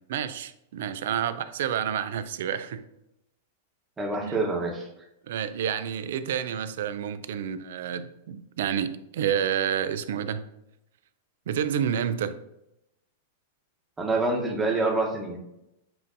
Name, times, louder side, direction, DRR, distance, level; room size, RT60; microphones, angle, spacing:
voice 1, 0.0-2.8 4.2-4.4 5.3-10.4 11.5-12.4, right 9 dB, 70° right, 0.3 m, -29 dB
voice 2, 4.0-4.9 14.0-15.4, right 2 dB, 15° right, 1.1 m, -26 dB
7.5 x 2.5 x 2.7 m
hypercardioid pair, 120°, 0 cm